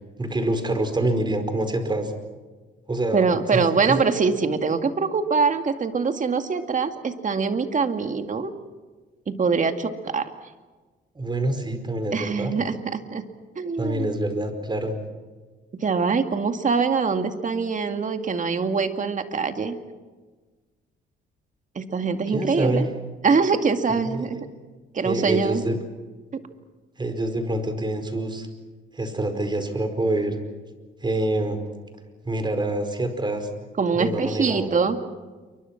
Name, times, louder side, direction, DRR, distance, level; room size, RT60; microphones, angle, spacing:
voice 1, 0.2-2.1 2.9-4.0 11.1-12.5 13.8-14.9 22.3-22.9 23.9-24.3 25.0-25.8 27.0-28.5 28.9-30.4 31.0-31.6 32.2-33.5 33.9-34.7, right 1 dB, 20° right, 7 dB, 4.9 m, -26 dB
voice 2, 3.1-8.5 9.3-10.3 12.1-13.2 13.6-14.1 15.7-19.8 21.8-22.9 23.2-24.5 24.9-25.7 26.3-26.4 33.8-35.0, right 5 dB, 40° right, 7 dB, 2.3 m, -23 dB
28.5 x 24.5 x 6.0 m, 1.3 s
cardioid pair, 90°, 20 cm